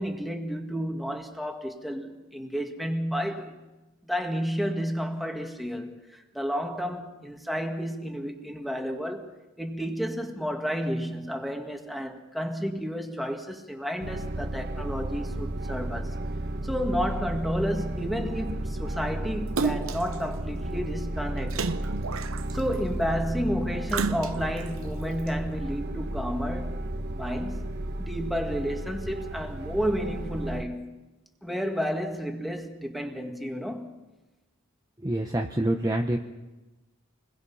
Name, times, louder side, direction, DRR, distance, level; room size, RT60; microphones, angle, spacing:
voice 1, 0.0-3.6 4.0-9.3 9.6-16.1 16.6-21.7 22.5-26.8 27.1-27.7 28.0-30.9 31.4-34.0, equal, ahead, 2.1 m, -31 dB
sound 1, 14.0-30.6, right 1 dB, 55° right, 1.1 m, -33 dB
Splash splatter, 19.6-20.2 21.5-22.7 23.9-24.7 25.3-25.4, right 4 dB, 75° right, 0.9 m, -30 dB
voice 2, 35.0-36.2, right 1 dB, 15° right, 1.1 m, -26 dB
28.5 x 21.5 x 5.7 m
head